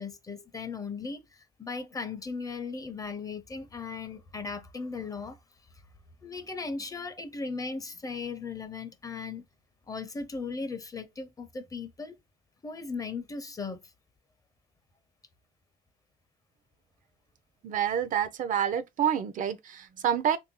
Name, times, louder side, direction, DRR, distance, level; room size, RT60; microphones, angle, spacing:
voice 1, 0.0-5.4 6.2-9.4 9.9-12.2 12.6-13.9, left 4 dB, 20° left, 0.5 m, -37 dB
voice 2, 17.6-20.4, right 9 dB, 50° right, 0.4 m, -28 dB
3.1 x 2.6 x 2.8 m
cardioid pair, 110°, 17 cm